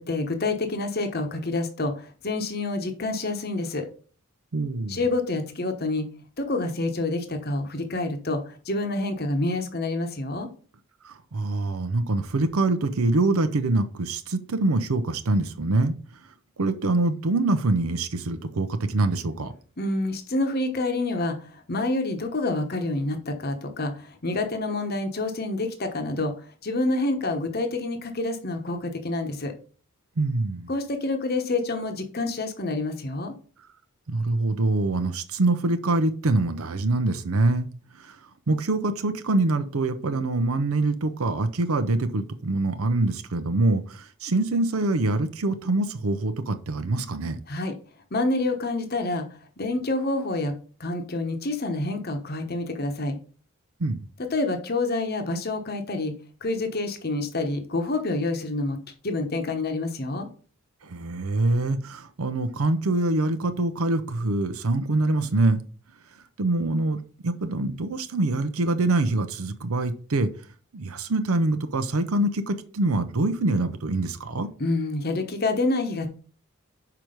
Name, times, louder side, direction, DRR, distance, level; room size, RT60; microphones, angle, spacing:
voice 1, 0.0-3.9 4.9-6.1 6.4-10.5 19.8-29.5 30.7-33.3 47.5-47.7 48.1-49.3 49.6-50.5 50.8-53.2 54.2-56.1 56.4-58.8 59.0-60.3 74.6-76.1, left 2 dB, 45° left, 6 dB, 1.0 m, -27 dB
voice 2, 4.5-5.0 11.0-16.0 16.6-19.5 30.2-30.7 34.1-37.7 37.9-38.2 38.5-47.4 53.8-54.0 60.8-65.6 66.4-70.3 70.7-74.5, right 2 dB, 75° right, 9 dB, 0.7 m, -25 dB
5.9 x 4.6 x 5.1 m, 0.41 s
head